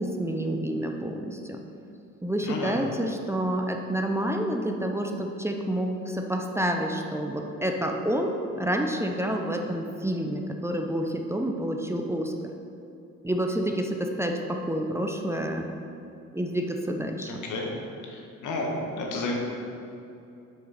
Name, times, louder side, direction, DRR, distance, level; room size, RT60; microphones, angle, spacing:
voice 1, 0.0-1.6 2.2-12.3 13.2-15.7 16.3-17.3, right 1 dB, 10° right, 3 dB, 0.6 m, -28 dB
voice 2, 2.4-2.7 17.3-17.7 18.1-19.3, left 2 dB, 80° left, -1 dB, 1.5 m, -32 dB
7.7 x 6.0 x 4.3 m, 2.7 s
cardioid pair, 90°, 30 cm